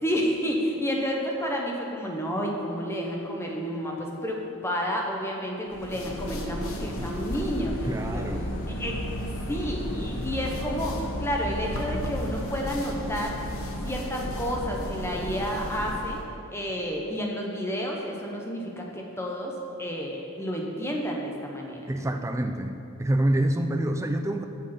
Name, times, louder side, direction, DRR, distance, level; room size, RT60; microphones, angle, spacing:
voice 1, 0.0-8.4 8.8-9.0 9.5-13.4 13.8-19.5 19.8-21.9, equal, 10° left, -1 dB, 0.9 m, -30 dB
sound 1, 5.7-16.2, equal, 65° left, 1.0 m, -33 dB
voice 2, 7.9-8.5 21.9-22.7 23.0-24.4, right 1 dB, 15° right, 6 dB, 0.4 m, -26 dB
7.8 x 6.5 x 5.7 m, 2.7 s
head